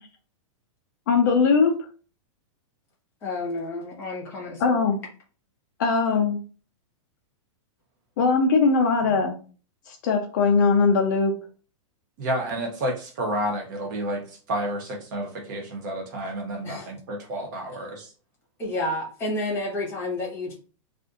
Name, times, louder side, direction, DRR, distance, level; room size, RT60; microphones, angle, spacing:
voice 1, 1.1-1.8 4.6-5.0 5.8-6.4 8.2-9.4 9.9-11.4, left 4 dB, 40° left, 3 dB, 0.4 m, -20 dB
voice 2, 3.2-4.8 9.0-9.1 16.6-16.9 18.6-20.5, left 2 dB, 15° left, -3 dB, 1.0 m, -30 dB
voice 3, 12.2-18.1, right 1 dB, 35° right, 3 dB, 0.7 m, -30 dB
2.5 x 2.4 x 3.6 m, 0.38 s
supercardioid pair, 175°, 16 cm